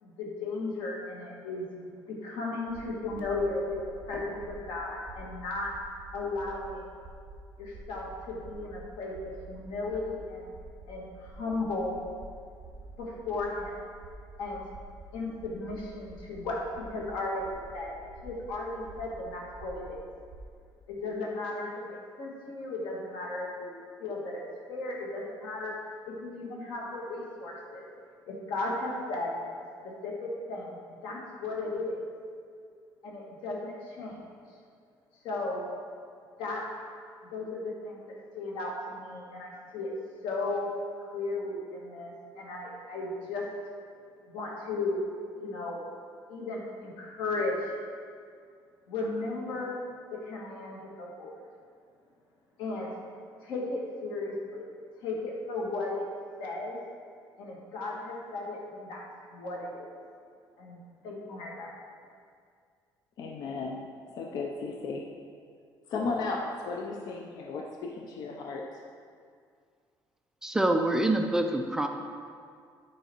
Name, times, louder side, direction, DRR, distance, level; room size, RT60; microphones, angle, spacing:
voice 1, 0.0-3.8 4.1-5.8 6.1-6.9 7.6-10.5 10.9-12.0 13.0-13.7 14.4-14.6 15.1-17.9 18.2-20.1 20.9-23.7 24.0-24.4 24.7-25.8 26.1-27.9 28.3-29.4 29.8-30.8 31.0-32.0 33.0-34.2 35.2-35.7 36.4-36.7 37.3-39.9 40.2-40.7 41.0-43.5 44.3-45.1 45.3-45.8 46.3-47.7 48.9-49.8 50.1-51.4 52.6-52.9 53.4-54.7 55.0-56.1 56.4-56.8 57.4-59.0 59.3-59.9 60.6-60.8 61.0-61.7, left 2 dB, 90° left, -2 dB, 1.7 m, -35 dB
sound 1, 2.7-20.5, right 2 dB, 40° right, 0.7 m, -49 dB
voice 2, 63.2-63.8 64.1-65.1 65.9-68.8, left 3 dB, 50° left, 1 dB, 0.5 m, -35 dB
voice 3, 70.4-71.9, right 1 dB, 5° right, 4 dB, 0.3 m, -26 dB
9.3 x 5.0 x 4.4 m, 2.2 s
cardioid pair, 175°, 8 cm